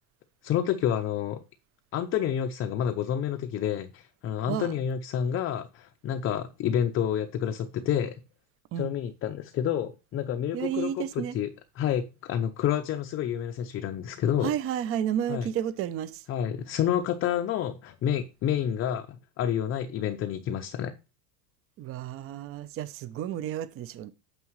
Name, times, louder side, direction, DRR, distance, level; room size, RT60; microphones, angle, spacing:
voice 1, 0.4-1.4 1.9-8.2 8.8-11.5 11.8-14.5 15.3-15.5 16.3-20.9, left 9 dB, 30° left, 0.6 m, -29 dB
voice 2, 10.5-11.4 14.4-16.2 21.8-24.1, right 10 dB, 30° right, 0.6 m, -31 dB
9.5 x 7.0 x 3.1 m
supercardioid pair, 140°, 45 cm